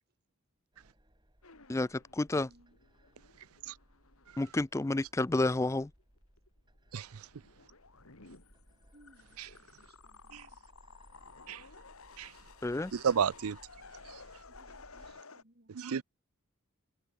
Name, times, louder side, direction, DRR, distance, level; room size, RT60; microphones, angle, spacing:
sound 1, 0.7-15.2, equal, 20° right, 6.1 m, -63 dB
sound 2, 1.4-5.5 5.8-6.5 6.9-15.4, left 4 dB, 75° left, 2.9 m, -55 dB
voice 1, 1.7-2.5 4.4-5.9 12.6-12.9, left 2 dB, 15° left, 0.3 m, -30 dB
voice 2, 2.4-2.8 8.9-10.4 14.5-15.8, right 1 dB, 45° right, 3.5 m, -64 dB
voice 3, 6.9-7.3 9.4-9.5 10.3-10.5 11.5-11.7 12.2-12.4 12.9-13.6 14.0-14.2 15.7-16.0, right 7 dB, 80° right, 0.5 m, -33 dB
head